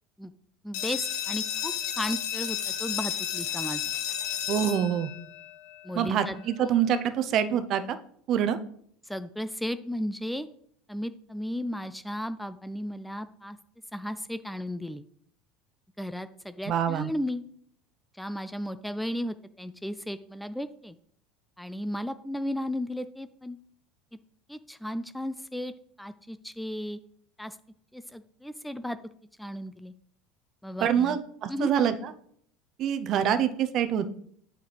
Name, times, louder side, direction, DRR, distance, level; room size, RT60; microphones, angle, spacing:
voice 1, 0.6-3.8 5.8-6.8 9.0-10.5 10.9-13.6 13.9-15.0 16.0-17.4 18.2-21.0 21.6-23.6 24.5-25.7 26.0-27.0 27.4-27.6 27.9-29.0 29.4-29.9 30.6-31.2 31.5-31.7, equal, ahead, 12 dB, 0.3 m, -35 dB
sound 1, 0.7-6.2, left 10 dB, 80° left, 1.2 m, -32 dB
voice 2, 4.5-5.1 6.0-7.8 8.3-8.6 16.7-17.1 30.8-31.9 32.8-34.1, right 9 dB, 50° right, 11 dB, 0.6 m, -25 dB
8.3 x 5.9 x 3.3 m, 0.63 s
supercardioid pair, 120°, 0 cm